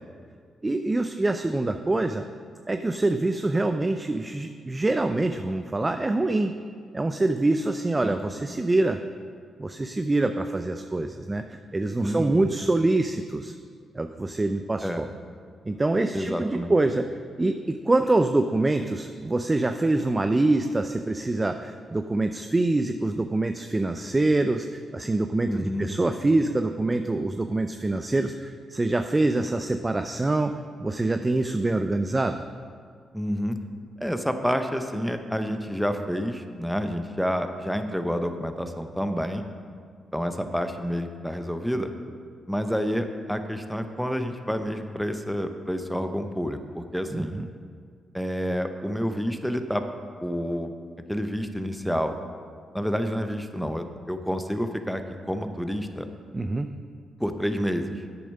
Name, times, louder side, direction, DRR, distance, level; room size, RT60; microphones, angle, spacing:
voice 1, 0.6-2.2 2.7-6.5 6.9-9.0 9.6-13.5 13.9-15.1 15.7-17.1 17.4-32.4 47.1-47.5 56.3-56.7, right 2 dB, 25° right, 8 dB, 0.5 m, -25 dB
voice 2, 12.0-12.5 14.8-15.0 16.1-16.7 25.5-25.9 33.1-33.6 34.0-39.4 40.1-41.9 42.5-47.4 48.1-49.9 50.2-50.7 51.1-52.1 52.7-55.0 55.3-56.1 57.2-57.9, equal, ahead, 7 dB, 0.9 m, -29 dB
8.4 x 6.9 x 5.4 m, 2.1 s
supercardioid pair, 50°, 0 cm